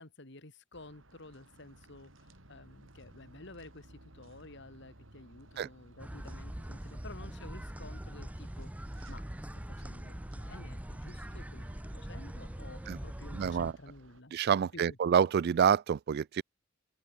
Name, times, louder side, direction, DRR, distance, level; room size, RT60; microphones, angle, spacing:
voice 1, 0.0-9.2 9.5-14.3 14.7-15.0, left 2 dB, 65° left, 3.0 m, -52 dB
sound 1, 0.7-14.2, right 1 dB, 80° right, 5.4 m, -59 dB
sound 2, 6.0-13.7, right 1 dB, 5° right, 0.6 m, -42 dB
voice 2, 13.3-13.7 14.3-16.4, right 7 dB, 55° right, 0.3 m, -27 dB
open air
head